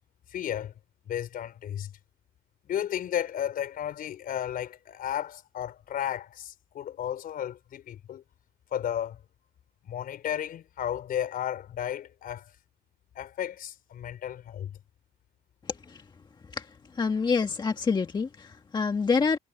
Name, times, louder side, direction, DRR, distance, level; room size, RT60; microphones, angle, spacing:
voice 1, 0.3-0.7 1.1-1.9 2.7-8.2 8.7-9.2 9.8-12.5 13.2-14.8, left 10 dB, 60° left, 5.2 m, -33 dB
voice 2, 16.9-19.4, left 5 dB, 25° left, 1.6 m, -27 dB
cardioid pair, 110°, 17 cm